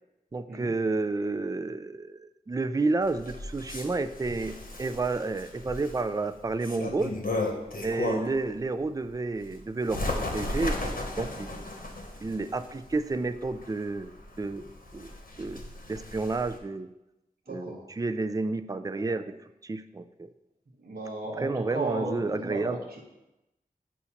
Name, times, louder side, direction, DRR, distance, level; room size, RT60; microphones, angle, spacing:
voice 1, 0.3-4.5 4.8-7.2 7.8-10.0 10.3-11.7 12.2-14.1 14.4-14.6 14.9-15.1 15.4-15.6 15.9-16.9 17.5-20.3 21.4-22.8, right 3 dB, 25° right, 10 dB, 0.3 m, -30 dB
Bird, 3.0-8.5 8.9-16.6, left 2 dB, 70° left, 1.0 m, -35 dB
voice 2, 17.5-17.9 20.8-23.1, right 2 dB, 90° right, -2 dB, 1.0 m, -35 dB
8.4 x 2.9 x 5.7 m, 0.94 s
wide cardioid pair, 65°, 15 cm